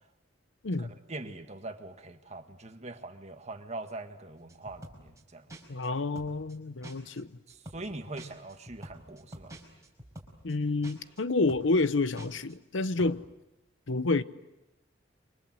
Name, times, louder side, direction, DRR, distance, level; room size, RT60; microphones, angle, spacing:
voice 1, 0.8-5.5 7.5-9.6, right 2 dB, 35° right, 1.8 m, -42 dB
sound 1, 4.5-5.2 5.5-5.9 6.2-6.6 6.8-7.2 7.5-7.9 8.2-10.5 10.8-11.2 11.5-11.9 12.2-12.5 12.8-13.1, right 1 dB, 15° right, 5.1 m, -47 dB
voice 2, 5.7-7.3 10.4-13.2 13.9-14.2, left 3 dB, 90° left, 0.9 m, -29 dB
28.5 x 24.5 x 7.8 m
head